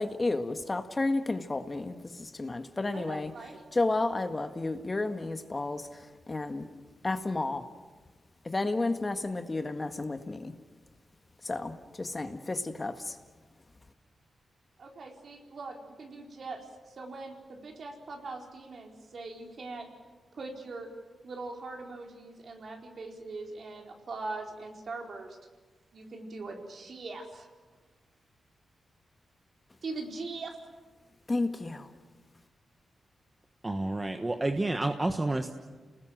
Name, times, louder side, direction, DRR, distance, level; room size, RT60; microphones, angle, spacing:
voice 1, 0.0-3.3 3.7-5.9 6.3-6.6 7.0-7.7 8.4-10.5 11.4-13.1 31.3-31.9, left 2 dB, 30° left, 8 dB, 1.7 m, -31 dB
voice 2, 2.9-3.6 14.8-16.6 17.0-19.9 20.3-20.9 21.2-25.3 25.9-27.5 29.8-30.6, right 3 dB, 60° right, 2 dB, 4.3 m, -41 dB
voice 3, 33.6-35.5, right 2 dB, 25° right, 6 dB, 1.4 m, -29 dB
28.5 x 20.0 x 7.7 m, 1.3 s
cardioid pair, 65°, 0 cm